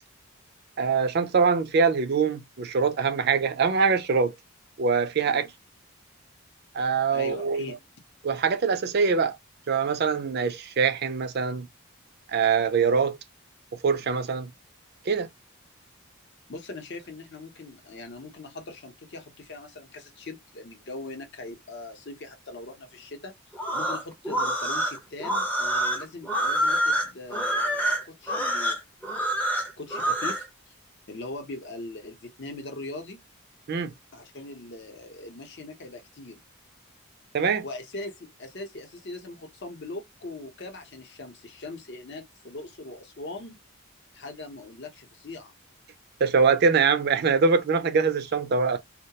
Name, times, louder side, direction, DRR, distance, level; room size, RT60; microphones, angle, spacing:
voice 1, 0.8-4.3 4.8-5.5 6.7-7.7 8.2-9.4 9.7-11.7 12.3-13.2 13.7-14.5 15.1-15.3 33.7-33.9 37.3-37.6 46.2-48.8, right 5 dB, 50° right, 0.4 m, -23 dB
voice 2, 7.1-7.8 16.5-23.3 23.7-28.8 29.8-30.5 31.1-33.2 34.1-36.4 37.4-43.6 44.1-45.5, left 2 dB, 50° left, 0.7 m, -41 dB
sound 1, 23.5-30.4, right 1 dB, 10° left, 0.5 m, -26 dB
2.3 x 2.1 x 2.7 m
head